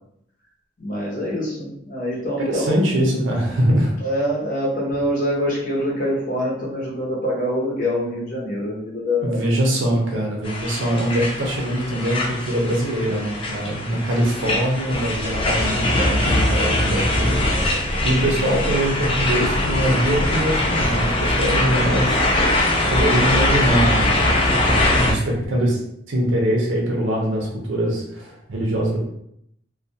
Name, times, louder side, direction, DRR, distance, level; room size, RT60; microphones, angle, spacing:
voice 1, 0.8-2.7 4.0-9.4, equal, 45° left, -5 dB, 0.8 m, -25 dB
voice 2, 2.4-4.0 9.2-24.1 24.5-25.8 26.1-29.0, right 1 dB, 85° right, -1 dB, 0.6 m, -23 dB
sound 1, 10.4-25.1, left 1 dB, 30° left, 0.3 m, -21 dB
2.3 x 2.2 x 2.7 m, 0.75 s
head